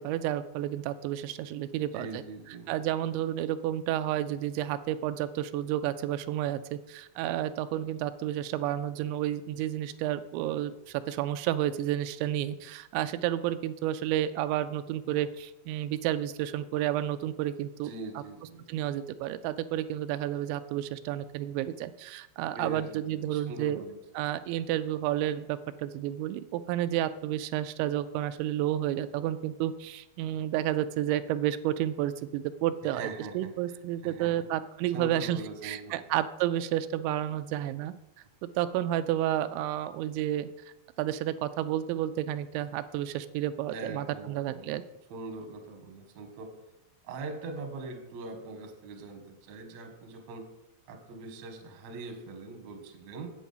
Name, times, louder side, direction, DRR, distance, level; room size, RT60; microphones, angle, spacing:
voice 1, 0.0-2.2 2.7-18.2 18.7-23.8 24.2-33.1 33.3-37.9 38.4-40.5 41.0-44.8, right 12 dB, 85° right, 11 dB, 2.9 m, -31 dB
voice 2, 1.7-2.7 17.8-18.6 22.5-24.0 32.8-33.8 34.0-34.4 34.9-36.0 43.7-44.7 45.1-46.5 47.0-50.4 50.9-53.3, right 3 dB, 60° right, 4 dB, 1.8 m, -42 dB
8.4 x 8.4 x 5.5 m, 0.92 s
omnidirectional pair, 5.2 m